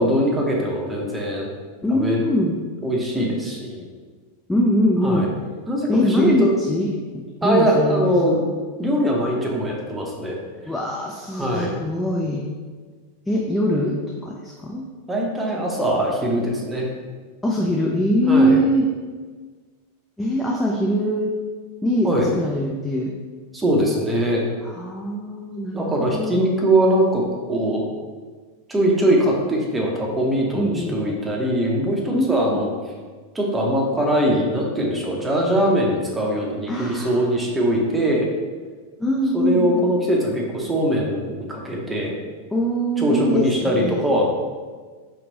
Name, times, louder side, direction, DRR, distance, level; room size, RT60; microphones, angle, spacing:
voice 1, 0.0-1.5 1.9-2.3 2.8-3.8 5.0-5.3 5.7-6.5 7.4-8.4 8.8-10.4 11.3-11.7 15.1-16.9 18.3-18.6 22.0-22.3 23.5-24.4 25.7-27.2 27.5-27.9 28.7-32.7 33.3-38.3 39.3-42.2 43.0-44.3, equal, 10° right, -1 dB, 0.7 m, -21 dB
voice 2, 1.8-2.6 4.5-5.3 5.9-8.4 10.7-12.5 13.3-14.8 17.4-18.9 20.2-21.4 21.8-23.1 24.6-25.9 26.1-26.5 30.6-31.0 32.1-32.6 36.7-37.3 39.0-39.8 42.5-44.1, equal, 5° left, -2 dB, 0.4 m, -22 dB
3.3 x 3.0 x 3.8 m, 1.4 s
figure-of-eight pair, 90°, 0 cm